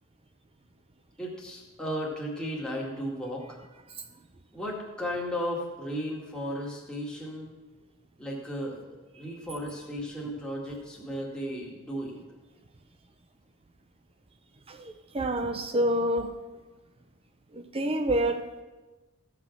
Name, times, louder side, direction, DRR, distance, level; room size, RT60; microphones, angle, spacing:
voice 1, 1.2-3.6 4.5-7.5 8.2-12.2, equal, 5° left, -4 dB, 2.0 m, -35 dB
voice 2, 14.7-16.3 17.5-18.6, right 1 dB, 25° right, 7 dB, 0.6 m, -28 dB
15.0 x 5.9 x 6.0 m, 1.2 s
head